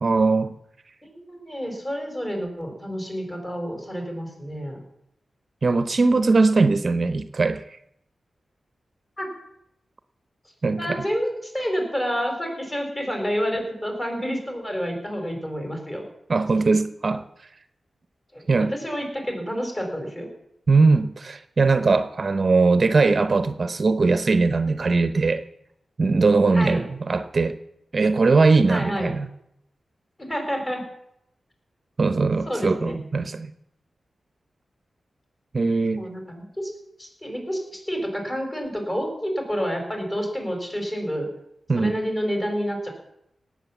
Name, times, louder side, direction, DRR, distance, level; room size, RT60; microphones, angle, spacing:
voice 1, 0.0-0.6 5.6-7.6 10.6-11.0 16.3-17.2 18.5-18.7 20.7-25.4 26.0-27.5 27.9-29.3 32.0-33.5 35.5-36.1 41.7-42.0, right 3 dB, 45° right, 11 dB, 0.7 m, -20 dB
voice 2, 1.0-4.8 9.2-9.3 10.8-16.0 18.3-20.3 26.5-26.8 28.7-29.1 30.2-30.9 32.5-33.0 36.0-36.7 37.0-41.3 41.8-42.9, equal, 25° left, 3 dB, 4.3 m, -29 dB
18.0 x 7.8 x 7.1 m, 0.78 s
wide cardioid pair, 105°, 0 cm